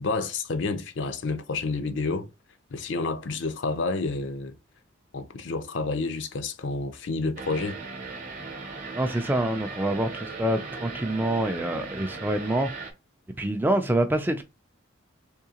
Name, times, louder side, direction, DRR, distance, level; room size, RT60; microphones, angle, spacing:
voice 1, 0.0-2.3 2.7-4.5 5.1-7.8, left 3 dB, 65° left, 0.5 m, -29 dB
sound 1, 7.4-12.9, right 4 dB, 40° right, 0.8 m, -38 dB
voice 2, 8.9-12.9 13.4-14.4, right 1 dB, 10° right, 0.3 m, -26 dB
3.6 x 3.1 x 2.8 m
head